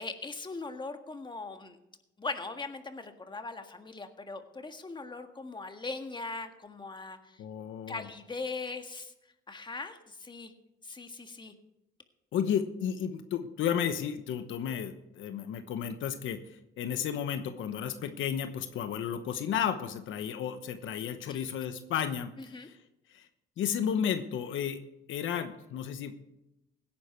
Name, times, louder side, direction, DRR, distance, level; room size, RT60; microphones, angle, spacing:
voice 1, 0.0-1.8 2.2-7.4 7.9-9.1 9.5-10.5 10.8-11.5 21.3-21.5 22.4-22.7, left 3 dB, 25° left, 6 dB, 1.7 m, -40 dB
voice 2, 7.4-8.0 12.3-22.8 23.1-23.3 23.6-24.8 25.1-26.2, left 8 dB, 80° left, 9 dB, 1.1 m, -33 dB
17.0 x 10.5 x 4.6 m, 0.87 s
cardioid pair, 90°, 20 cm